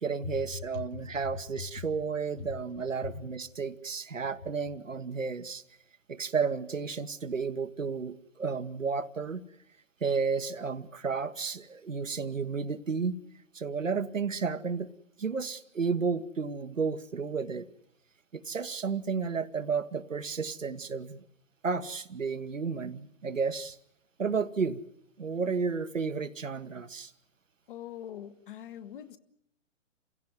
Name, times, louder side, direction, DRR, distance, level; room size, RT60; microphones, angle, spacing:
voice 1, 0.0-5.6 6.1-9.4 10.0-13.1 13.5-14.9 15.2-17.7 18.3-21.2 21.6-23.8 24.2-24.8 25.2-27.1, right 5 dB, 75° right, 9 dB, 1.4 m, -32 dB
voice 2, 27.7-29.2, left 10 dB, 40° left, 10 dB, 1.5 m, -43 dB
28.5 x 16.5 x 9.6 m, 0.76 s
figure-of-eight pair, 125°, 39 cm